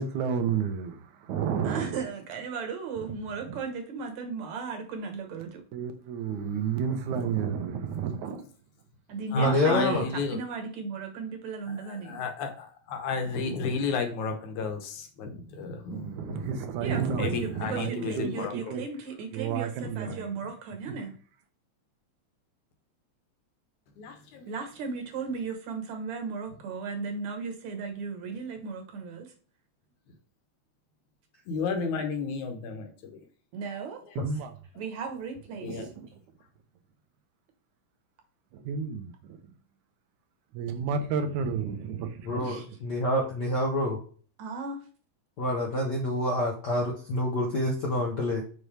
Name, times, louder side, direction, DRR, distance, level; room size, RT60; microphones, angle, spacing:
voice 1, 0.0-2.0 3.5-3.6 5.7-8.5 15.9-18.8 19.3-20.3 34.2-34.5 35.6-36.1 38.5-39.4 40.5-42.4, right 6 dB, 90° right, 2.3 m, -31 dB
voice 2, 1.6-5.6 9.1-12.2 16.8-21.1 24.5-29.3 33.5-34.0 34.8-35.9 42.4-42.7 43.1-43.2 44.4-44.8, right 5 dB, 75° right, 2.5 m, -36 dB
voice 3, 6.2-6.8 9.3-10.4 11.7-18.8 19.8-20.2 24.0-25.1 31.5-33.2 34.0-34.2 35.6-35.9, left 5 dB, 85° left, 2.5 m, -34 dB
voice 4, 9.3-10.1 42.2-44.0 45.4-48.4, left 1 dB, 65° left, 1.0 m, -27 dB
6.1 x 5.2 x 3.3 m
omnidirectional pair, 3.3 m